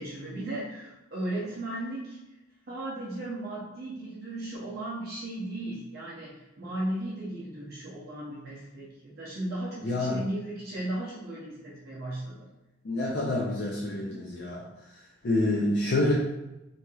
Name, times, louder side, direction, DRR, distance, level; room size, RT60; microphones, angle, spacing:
voice 1, 0.0-2.2 2.7-12.5, right 1 dB, 50° right, -7 dB, 0.6 m, -36 dB
voice 2, 9.8-10.2 12.8-14.7 15.2-16.1, left 2 dB, 55° left, -4 dB, 0.4 m, -27 dB
3.0 x 2.7 x 2.3 m, 0.96 s
head